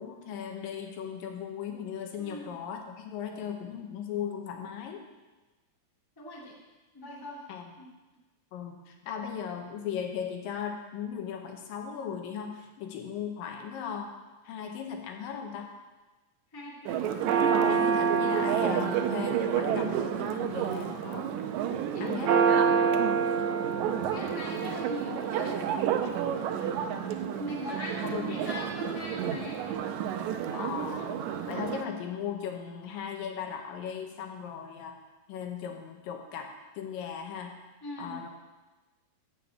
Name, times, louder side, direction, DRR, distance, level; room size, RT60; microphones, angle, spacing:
voice 1, 0.0-5.0 7.5-7.7 8.5-14.1 14.4-15.7 17.6-21.3 22.0-22.5 28.0-28.6 30.5-35.0 35.3-36.5 36.8-37.5 38.0-38.3, left 7 dB, 85° left, 3 dB, 2.7 m, -37 dB
voice 2, 2.2-2.5 6.2-6.6 6.9-7.4 7.8-7.9 16.5-17.3 18.2-18.5 21.9-22.2 24.1-25.6 26.0-26.5 27.3-29.7 37.8-38.2, left 1 dB, 15° left, -4 dB, 0.9 m, -40 dB
Church bell, 16.8-31.8, right 7 dB, 90° right, 1.6 m, -28 dB
7.4 x 6.8 x 8.0 m, 1.2 s
omnidirectional pair, 4.0 m